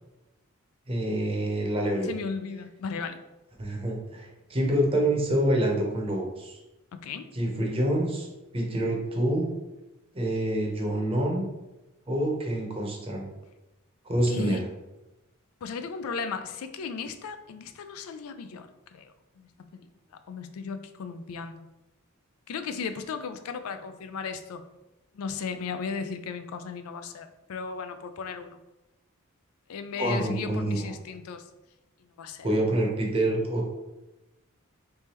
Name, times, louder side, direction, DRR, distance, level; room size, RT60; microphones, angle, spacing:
voice 1, 0.9-2.1 3.6-6.6 7.3-8.3 8.5-9.5 10.1-11.5 12.1-13.3 14.0-14.6 30.0-30.9 32.4-33.7, right 1 dB, 25° right, 0 dB, 0.7 m, -27 dB
voice 2, 2.1-3.2 6.9-7.3 14.3-14.6 15.6-19.9 20.3-21.7 22.5-24.6 25.1-28.6 29.7-31.5 32.2-32.5, left 5 dB, 90° left, 9 dB, 0.4 m, -36 dB
3.3 x 3.2 x 2.9 m, 1.0 s
head